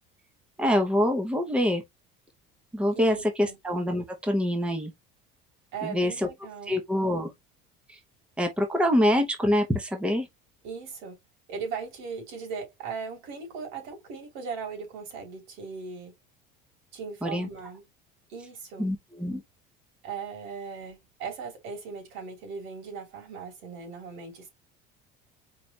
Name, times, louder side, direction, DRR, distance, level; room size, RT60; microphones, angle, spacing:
voice 1, 0.6-1.8 2.7-4.9 5.8-6.3 6.7-7.3 7.9-8.0 8.4-10.3 17.2-17.5 18.8-19.4, left 1 dB, 5° right, 0.9 m, -25 dB
voice 2, 2.9-3.6 5.7-6.8 10.6-11.2 11.5-16.1 16.9-17.8 18.3-18.9 20.0-24.5, right 5 dB, 75° right, 3.1 m, -38 dB
4.7 x 2.5 x 4.1 m
cardioid pair, 150°, 21 cm